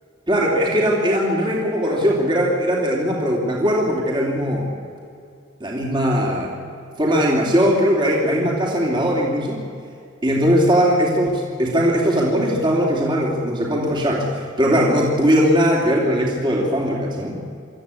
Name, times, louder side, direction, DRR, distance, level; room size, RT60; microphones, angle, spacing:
voice 1, 0.3-4.7 5.6-6.5 7.0-9.6 10.2-17.4, equal, 25° right, -2 dB, 3.2 m, -19 dB
26.0 x 14.0 x 8.5 m, 2.4 s
head